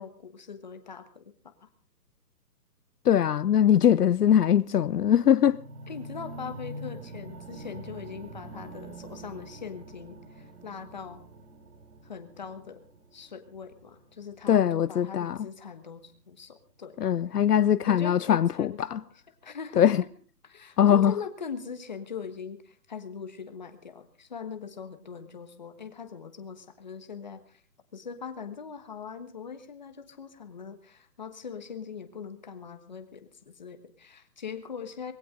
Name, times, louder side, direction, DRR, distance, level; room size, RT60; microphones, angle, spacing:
voice 1, 0.0-1.7 5.9-11.2 12.0-12.9 13.1-17.1 17.9-19.0 19.4-20.1 20.4-27.6 27.9-35.1, left 6 dB, 25° left, 1.4 m, -41 dB
voice 2, 3.0-5.6 14.5-15.4 17.0-19.0 19.8-20.0 20.8-21.2, left 9 dB, 70° left, 0.7 m, -21 dB
sound 1, 5.4-15.5 16.2-16.3, right 1 dB, 60° right, 3.2 m, -45 dB
21.0 x 16.0 x 3.8 m
hypercardioid pair, 180°, 49 cm